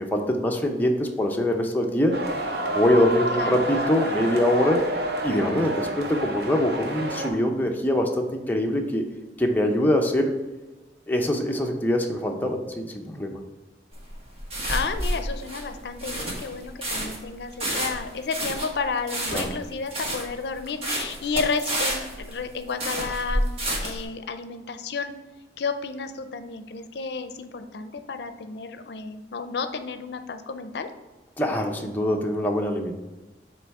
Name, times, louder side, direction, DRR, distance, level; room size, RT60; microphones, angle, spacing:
voice 1, 0.0-2.2 2.7-4.9 5.2-9.1 9.4-10.3 11.1-13.4 19.3-19.6 31.4-32.9, left 1 dB, 10° left, 2 dB, 0.6 m, -23 dB
sound 1, 2.1-7.3, right 1 dB, 65° right, 0.7 m, -29 dB
sound 2, 13.9-24.0, right 1 dB, 35° right, 1.3 m, -29 dB
voice 2, 14.7-23.5 23.8-25.1 25.6-30.9, left 4 dB, 70° left, 9 dB, 0.5 m, -31 dB
7.7 x 3.1 x 4.7 m, 1.2 s
head